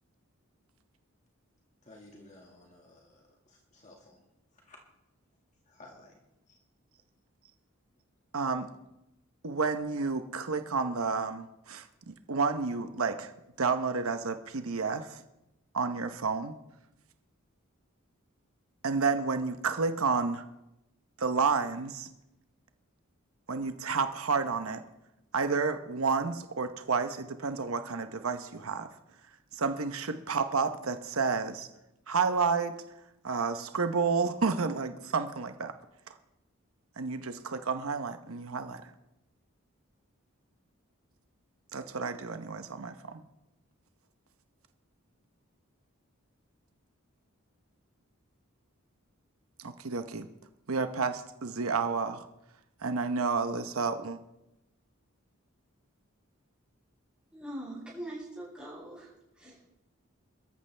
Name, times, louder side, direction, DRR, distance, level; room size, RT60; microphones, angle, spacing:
voice 1, 1.9-3.2 3.5-4.2 4.7-4.8 5.7-6.1, left 2 dB, 35° left, 0 dB, 1.9 m, -54 dB
voice 2, 8.3-8.7 9.4-13.3 13.6-15.2 15.7-16.5 18.8-20.4 21.2-22.1 23.5-24.8 25.3-28.9 29.5-31.7 32.1-32.7 33.2-35.7 37.0-38.8 41.7-43.2 49.6-50.3 50.7-52.3 52.8-54.2, right 4 dB, 85° right, 8 dB, 0.9 m, -30 dB
voice 3, 57.3-59.7, right 1 dB, 5° right, -7 dB, 7.6 m, -42 dB
22.0 x 13.5 x 3.4 m, 0.90 s
head